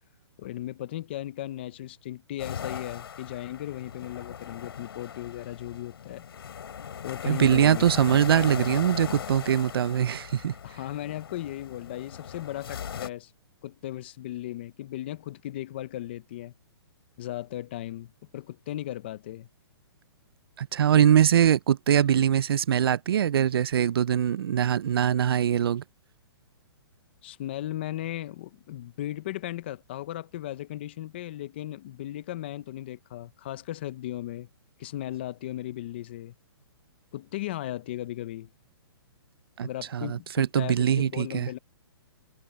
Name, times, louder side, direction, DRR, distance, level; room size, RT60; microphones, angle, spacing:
voice 1, 0.4-6.2 7.0-7.9 10.6-13.3 13.6-16.5 17.2-19.5 27.2-34.5 34.8-36.3 37.1-38.5 39.6-41.6, left 14 dB, 25° left, 0.5 m, -36 dB
sound 1, 2.4-13.1, left 8 dB, 65° left, 3.9 m, -39 dB
voice 2, 7.3-10.5 20.6-25.8 39.6-41.5, right 9 dB, 65° right, 0.4 m, -23 dB
hypercardioid pair, 175°, 14 cm